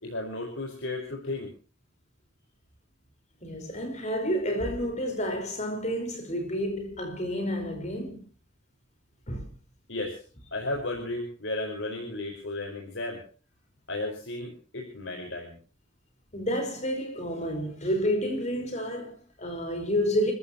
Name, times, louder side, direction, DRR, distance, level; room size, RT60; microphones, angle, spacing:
voice 1, 0.0-1.5 9.9-10.2 10.5-13.2 13.9-15.5, left 2 dB, 65° left, 4.8 m, -34 dB
voice 2, 3.4-8.2 9.3-9.5 16.3-20.3, equal, 35° left, 4.9 m, -30 dB
30.0 x 14.5 x 3.0 m
head